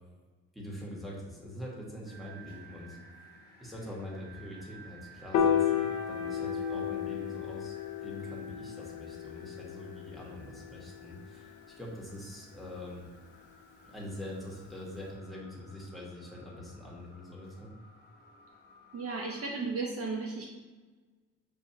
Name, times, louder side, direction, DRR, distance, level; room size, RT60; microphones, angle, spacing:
voice 1, 0.5-3.0 3.6-13.1 13.8-17.7 19.6-19.7, left 1 dB, ahead, -5 dB, 1.4 m, -44 dB
sound 1, 2.1-19.5, right 2 dB, 30° left, 1.1 m, -55 dB
Piano, 5.3-11.6, left 8 dB, 80° left, 0.6 m, -33 dB
voice 2, 18.9-20.5, right 3 dB, 50° right, 0 dB, 0.7 m, -35 dB
6.9 x 2.7 x 2.9 m, 1.4 s
cardioid pair, 90°, 30 cm